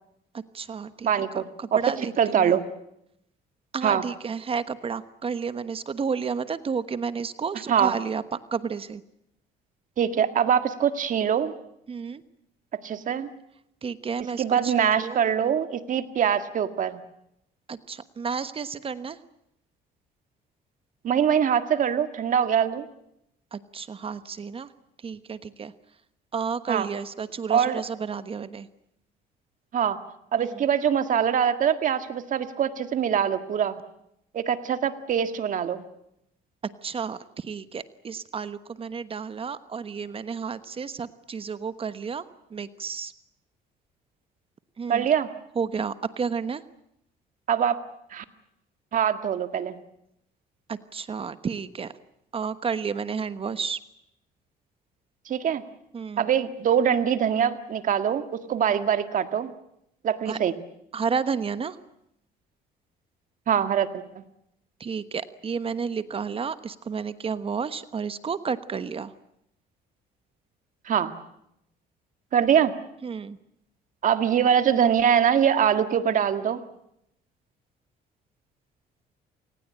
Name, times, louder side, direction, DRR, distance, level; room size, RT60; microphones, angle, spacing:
voice 1, 0.3-2.6 3.7-8.2 8.5-9.0 11.9-12.2 13.8-15.2 17.7-19.2 23.5-24.7 25.0-25.7 26.3-28.7 30.4-30.6 36.8-42.2 42.5-43.1 44.8-45.1 45.5-46.6 50.7-51.9 52.3-53.8 55.9-56.3 60.3-60.4 60.9-61.8 64.8-69.1 73.0-73.4, right 6 dB, 35° right, 13 dB, 1.2 m, -31 dB
voice 2, 1.0-1.5 1.7-1.8 2.2-2.6 3.8-4.0 7.7-7.9 10.0-11.5 12.8-13.3 14.4-17.0 21.0-22.9 26.7-26.9 27.5-27.8 29.7-30.0 30.3-33.8 34.3-35.8 44.9-45.3 47.5-47.8 48.1-48.2 48.9-49.8 55.3-55.6 56.2-59.5 60.0-60.5 63.5-64.2 70.9-71.1 72.3-72.7 74.0-76.6, right 8 dB, 50° right, 9 dB, 1.9 m, -23 dB
28.0 x 19.0 x 8.9 m, 0.80 s
cardioid pair, 110°, 17 cm